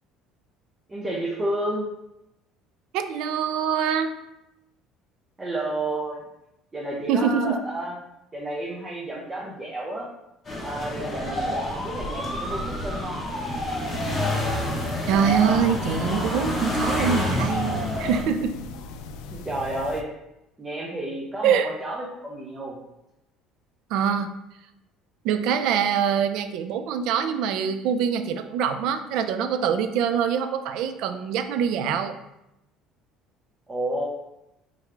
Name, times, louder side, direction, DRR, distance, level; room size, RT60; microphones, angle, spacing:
voice 1, 0.9-1.9 5.4-6.2 6.7-8.0 8.3-10.1 10.6-13.2 19.3-20.1 20.6-22.8 33.7-34.1, right 1 dB, 15° right, -3 dB, 0.5 m, -31 dB
voice 2, 2.9-4.1 7.1-7.6 15.1-18.6 21.4-21.7 23.9-24.3 25.2-32.1, right 7 dB, 65° right, 8 dB, 0.4 m, -24 dB
sound 1, 10.4-18.2, left 1 dB, 20° left, 1.0 m, -28 dB
sound 2, 13.8-20.0, left 3 dB, 85° left, 0.3 m, -39 dB
3.6 x 3.1 x 3.3 m, 0.87 s
cardioid pair, 155°, 0 cm